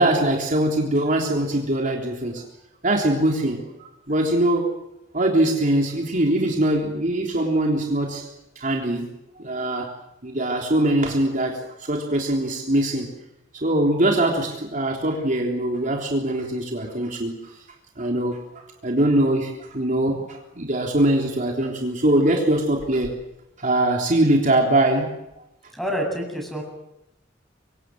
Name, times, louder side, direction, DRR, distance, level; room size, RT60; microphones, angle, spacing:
voice 1, 0.0-2.4 2.8-4.7 5.1-8.3 8.6-9.9 10.2-13.1 13.5-17.5 18.0-23.2 23.6-25.2, right 1 dB, 45° right, 1 dB, 3.6 m, -22 dB
voice 2, 25.7-26.6, equal, ahead, 2 dB, 7.8 m, -27 dB
26.5 x 24.5 x 7.8 m, 0.89 s
head